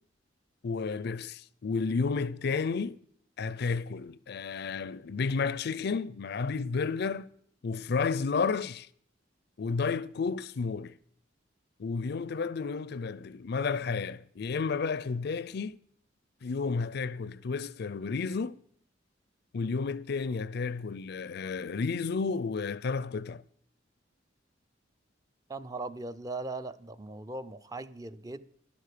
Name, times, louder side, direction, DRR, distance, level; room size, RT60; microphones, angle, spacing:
voice 1, 0.6-3.0 3.4-7.3 7.6-8.9 9.6-11.0 11.8-15.8 16.4-18.6 19.5-23.4, left 4 dB, 60° left, 0.4 m, -32 dB
voice 2, 25.5-28.5, right 2 dB, 20° right, 0.5 m, -39 dB
11.5 x 11.0 x 6.7 m
head